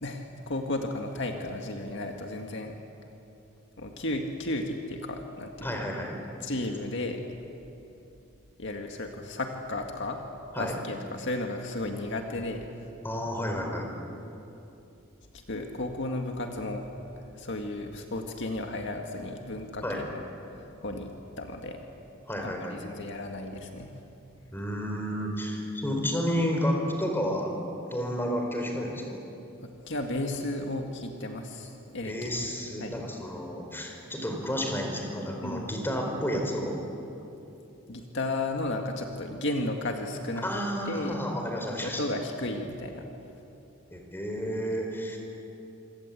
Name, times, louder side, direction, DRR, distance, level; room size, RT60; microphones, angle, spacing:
voice 1, 0.0-2.7 3.8-5.8 6.4-7.2 8.6-10.2 10.6-12.7 15.3-16.8 17.2-20.2 20.5-21.1 21.4-21.8 22.4-23.9 29.6-32.5 32.8-33.0 35.4-35.7 37.9-40.5 40.9-41.2 41.8-43.0, left 2 dB, 60° left, 3 dB, 2.0 m, -34 dB
voice 2, 5.6-6.2 10.5-10.7 13.0-13.9 19.8-20.0 22.3-22.8 24.5-27.6 27.9-29.2 32.0-36.8 40.4-42.0 43.9-45.2, equal, 10° left, 2 dB, 4.4 m, -31 dB
27.0 x 25.0 x 8.5 m, 2.8 s
head